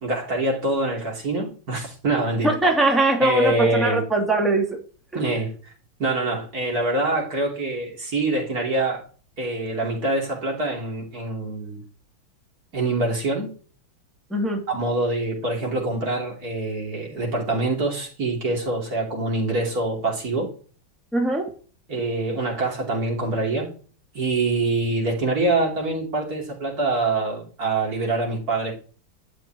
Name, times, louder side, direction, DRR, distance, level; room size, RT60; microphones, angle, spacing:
voice 1, 0.0-2.6 3.2-4.1 5.1-5.5 6.0-9.1 9.4-11.8 12.7-13.5 14.7-20.5 21.9-23.7 24.2-28.7, right 2 dB, 50° right, 3.6 m, -25 dB
voice 2, 2.4-4.7 14.3-14.6 21.1-21.5, right 2 dB, ahead, 2.6 m, -21 dB
12.0 x 6.5 x 9.0 m
omnidirectional pair, 2.1 m